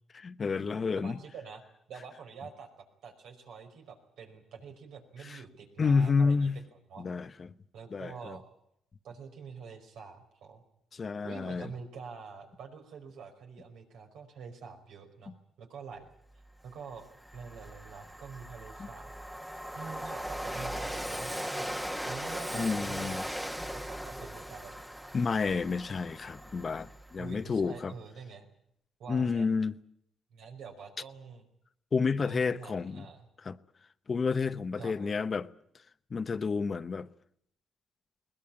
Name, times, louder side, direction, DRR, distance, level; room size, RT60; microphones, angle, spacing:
voice 1, 0.1-1.2 5.2-5.4 5.8-6.6 7.0-7.5 7.9-8.4 10.9-11.7 18.8-18.9 22.5-23.2 25.1-27.9 29.1-29.8 31.9-33.1 33.4-33.6 34.1-35.5 36.1-37.1, left 5 dB, 40° left, 0.8 m, -30 dB
voice 2, 0.9-1.6 1.9-2.7 3.0-6.5 6.9-7.1 7.7-8.4 9.0-10.6 11.2-16.1 16.6-17.1 17.3-19.1 19.5-21.7 22.0-23.2 23.7-24.7 27.2-28.5 29.0-29.5 30.3-31.5 32.2-33.3 34.8-35.1, right 5 dB, 80° right, 5.1 m, -46 dB
Train, 16.5-16.6 17.0-27.4, equal, 5° right, 1.4 m, -39 dB
21.5 x 20.0 x 8.7 m
cardioid pair, 90°, 0 cm